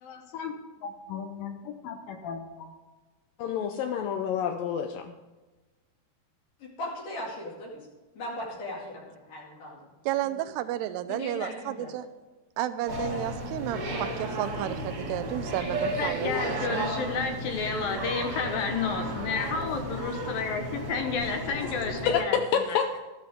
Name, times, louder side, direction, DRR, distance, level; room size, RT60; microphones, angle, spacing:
voice 1, 0.0-0.5 0.8-2.7 15.6-15.7 16.0-22.7, left 5 dB, 70° left, 5 dB, 2.4 m, -32 dB
voice 2, 3.4-5.2 22.1-22.2 22.5-23.0, left 8 dB, 85° left, 6 dB, 1.9 m, -28 dB
voice 3, 6.6-7.9 8.2-9.9 10.2-10.5 11.1-11.9, left 1 dB, 55° left, -3 dB, 3.6 m, -38 dB
voice 4, 10.1-12.1 12.6-16.8, right 12 dB, 80° right, 11 dB, 2.7 m, -32 dB
sound 1, 12.9-22.2, right 1 dB, 45° right, 1.5 m, -33 dB
13.5 x 13.5 x 3.6 m, 1.2 s
omnidirectional pair, 4.8 m